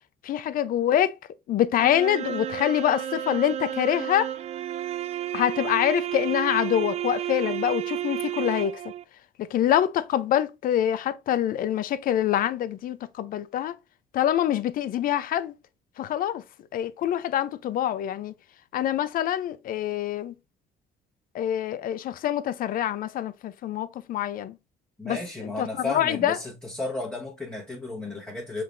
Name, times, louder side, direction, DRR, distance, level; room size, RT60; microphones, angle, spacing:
voice 1, 0.2-1.1 1.5-4.3 5.3-8.7 9.4-13.8 14.1-15.5 16.0-16.4 16.7-18.3 18.7-20.3 21.3-24.6 25.0-25.2 25.6-26.4, left 11 dB, 55° left, 0.5 m, -25 dB
sound 1, 1.8-9.0, right 12 dB, 40° right, 0.4 m, -32 dB
voice 2, 25.0-28.6, left 2 dB, 5° left, 1.1 m, -33 dB
5.7 x 3.4 x 2.5 m
cardioid pair, 110°, 17 cm